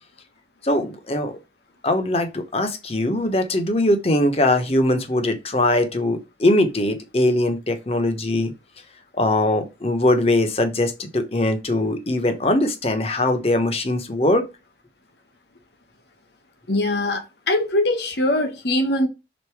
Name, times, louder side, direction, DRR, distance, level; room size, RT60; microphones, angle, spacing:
voice 1, 0.6-1.3 1.8-8.5 9.2-14.5, left 1 dB, 35° left, 1.0 m, -21 dB
voice 2, 16.7-19.1, left 1 dB, 75° left, 1.5 m, -22 dB
5.3 x 3.9 x 4.7 m
head